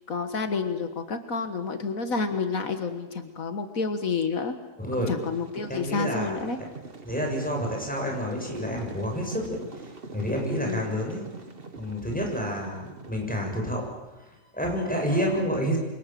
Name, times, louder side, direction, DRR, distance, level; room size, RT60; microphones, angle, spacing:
voice 1, 0.1-4.5 5.1-6.6 10.6-10.9, left 4 dB, 80° left, 8 dB, 2.0 m, -29 dB
voice 2, 4.8-5.1 5.7-6.4 7.0-9.6 10.1-11.2 11.8-13.9 14.5-15.8, equal, 5° left, 0 dB, 7.4 m, -29 dB
sound 1, 4.8-13.9, right 3 dB, 45° right, 2.0 m, -44 dB
28.5 x 25.0 x 7.7 m, 1.1 s
omnidirectional pair, 1.4 m